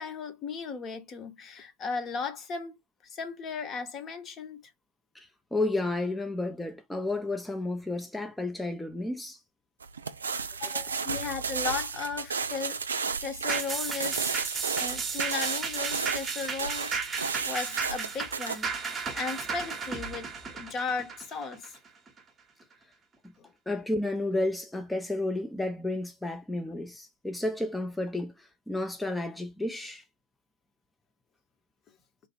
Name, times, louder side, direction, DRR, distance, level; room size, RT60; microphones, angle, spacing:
voice 1, 0.0-2.8 3.0-4.6 10.6-12.8 13.2-14.4 14.8-21.8 23.4-23.5, left 5 dB, 25° left, 1.0 m, -36 dB
voice 2, 5.1-9.4 10.6-11.0 23.2-23.3 23.7-30.0, left 2 dB, 5° left, 0.6 m, -32 dB
sound 1, 9.8-18.6, right 5 dB, 70° right, 0.4 m, -33 dB
sound 2, 13.5-22.2 22.6-22.7, right 5 dB, 20° right, 0.9 m, -34 dB
3.2 x 2.5 x 4.4 m
figure-of-eight pair, 90°, 0 cm